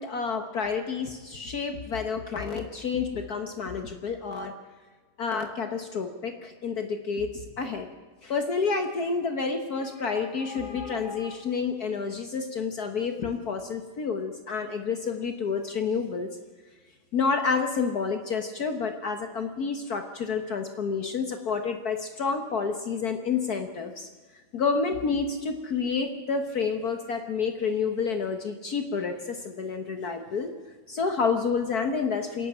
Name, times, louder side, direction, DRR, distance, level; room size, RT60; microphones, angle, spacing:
voice 1, 0.0-4.5 5.2-7.9 8.2-16.3 17.1-24.1 24.5-30.5 30.9-32.5, left 5 dB, 55° left, 6 dB, 1.6 m, -29 dB
25.5 x 11.5 x 8.9 m, 1.4 s
omnidirectional pair, 2.1 m